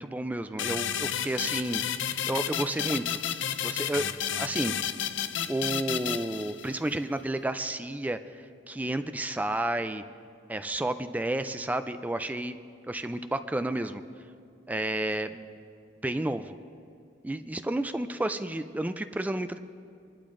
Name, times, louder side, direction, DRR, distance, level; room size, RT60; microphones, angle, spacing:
voice 1, 0.0-1.8 2.3-3.2 3.6-4.8 5.5-8.2 8.7-10.0 10.5-12.6 12.9-14.0 14.7-15.6 16.0-16.6 17.2-19.6, right 1 dB, 10° right, 10 dB, 0.3 m, -31 dB
sound 1, 0.6-6.9, left 9 dB, 75° left, 0.5 m, -31 dB
28.5 x 12.0 x 2.5 m, 2.4 s
head